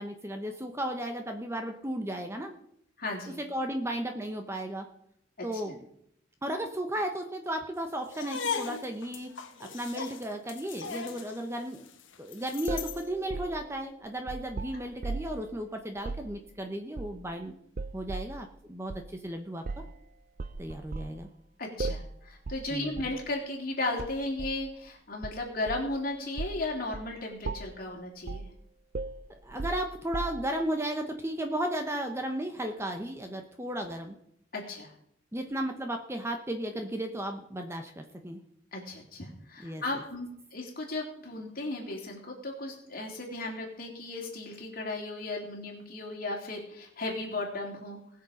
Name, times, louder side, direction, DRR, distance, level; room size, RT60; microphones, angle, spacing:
voice 1, 0.0-2.5 3.4-4.9 5.4-5.8 6.4-9.3 9.6-11.8 12.2-17.5 17.9-19.6 20.6-21.3 22.7-23.1 29.4-34.2 35.3-38.4 39.6-39.8, right 1 dB, 15° right, 5 dB, 0.9 m, -34 dB
voice 2, 3.0-3.4 5.7-5.8 21.6-28.4 34.5-34.9 38.7-48.0, left 2 dB, 45° left, 0 dB, 3.2 m, -35 dB
sound 1, 8.1-13.1, left 6 dB, 75° left, 1.2 m, -38 dB
sound 2, 12.7-15.4 16.0-16.3 17.0-17.4 17.8-18.4 18.9-19.1 19.7-20.0 20.4-21.2 21.8-22.2 22.5-22.7 23.0-23.2 24.0-24.6 25.2-26.0 26.4-26.6 26.9-27.1 27.4-27.8 28.3-28.5 28.9-30.6, right 3 dB, 45° right, 0.4 m, -37 dB
20.0 x 6.8 x 5.0 m, 0.72 s
head